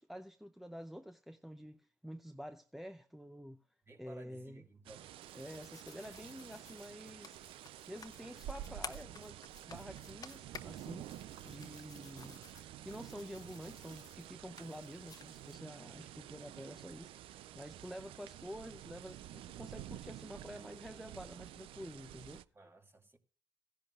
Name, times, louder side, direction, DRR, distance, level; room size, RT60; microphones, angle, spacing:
voice 1, 0.0-3.6 4.0-4.6 5.3-7.4 7.9-11.1 11.4-12.4 12.8-22.4, equal, ahead, 0.6 m, -49 dB
voice 2, 3.9-5.1 22.5-23.2, right 2 dB, 25° right, 2.0 m, -56 dB
sound 1, 4.8-22.4, right 12 dB, 75° right, 0.4 m, -50 dB
sound 2, 5.1-15.6, left 6 dB, 45° left, 1.0 m, -54 dB
16.0 x 10.5 x 2.4 m
supercardioid pair, 60°, 9 cm